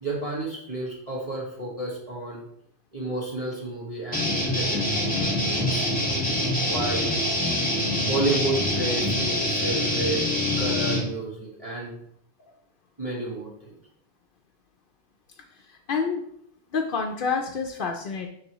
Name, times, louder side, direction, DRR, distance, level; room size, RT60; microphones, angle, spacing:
voice 1, 0.0-2.4 2.9-6.1 6.6-7.1 8.0-10.2 10.6-12.0 13.0-13.7, right 2 dB, 35° right, -5 dB, 1.4 m, -31 dB
sound 1, 4.1-11.0, left 1 dB, 10° left, 1.7 m, -25 dB
voice 2, 15.9-16.2 16.7-18.3, left 5 dB, 60° left, 2 dB, 0.7 m, -27 dB
10.0 x 3.4 x 3.0 m, 0.72 s
omnidirectional pair, 1.1 m